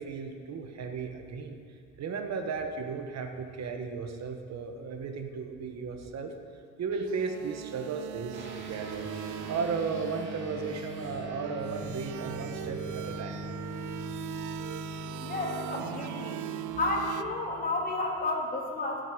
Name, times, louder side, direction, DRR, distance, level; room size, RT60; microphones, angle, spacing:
voice 1, 0.0-1.6 2.0-6.3 6.8-9.1 9.3-13.4 14.0-14.1 16.3-16.4, right 5 dB, 60° right, 5 dB, 1.3 m, -35 dB
sound 1, 6.9-17.2, right 13 dB, 80° right, 0.5 m, -40 dB
sound 2, 8.3-18.1, equal, 40° right, 2.4 m, -42 dB
voice 2, 15.2-16.4 16.8-19.0, left 2 dB, 30° left, -1 dB, 2.4 m, -31 dB
17.5 x 6.5 x 5.2 m, 2.1 s
cardioid pair, 90°, 30 cm